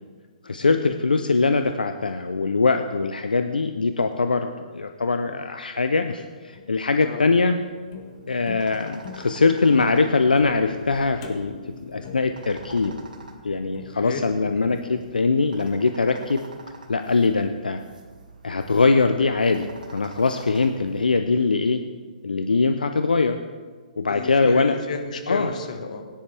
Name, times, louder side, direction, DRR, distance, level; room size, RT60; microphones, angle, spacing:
voice 1, 0.4-7.6 8.3-11.6 11.9-12.9 13.4-16.4 16.9-17.8 18.4-21.8 22.2-23.4 24.0-24.8 25.3-25.5, left 4 dB, 85° left, 7 dB, 0.6 m, -22 dB
sound 1, 6.1-17.3, left 6 dB, 45° left, 1.5 m, -44 dB
voice 2, 6.9-7.3 13.9-14.3 24.1-26.0, left 4 dB, 60° left, 5 dB, 1.5 m, -32 dB
sound 2, 7.9-21.1, right 3 dB, 80° right, 2.1 m, -47 dB
17.5 x 10.0 x 3.4 m, 1.5 s
hypercardioid pair, 130°, 5 cm